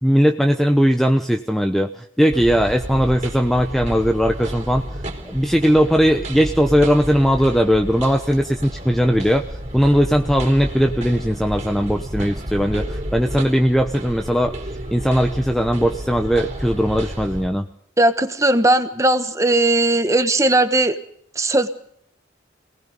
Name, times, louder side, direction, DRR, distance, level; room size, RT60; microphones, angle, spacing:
voice 1, 0.0-4.9 5.2-9.4 9.7-14.5 14.9-17.6, equal, ahead, 5 dB, 0.8 m, -18 dB
sound 1, 2.3-17.5, equal, 35° right, 3.8 m, -31 dB
voice 2, 18.0-20.9 21.3-21.7, right 2 dB, 15° right, 9 dB, 1.4 m, -17 dB
27.0 x 19.0 x 5.4 m, 0.69 s
head